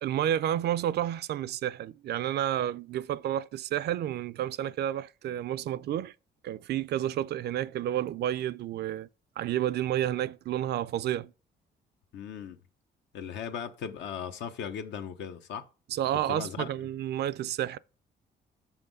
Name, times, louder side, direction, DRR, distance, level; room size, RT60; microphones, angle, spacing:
voice 1, 0.0-6.1 6.4-9.1 9.4-11.3 15.9-17.8, right 11 dB, 65° right, 0.4 m, -30 dB
voice 2, 12.1-12.6 13.1-15.7 16.3-16.7, left 8 dB, 80° left, 0.9 m, -37 dB
6.2 x 5.7 x 5.3 m
cardioid pair, 110°, 18 cm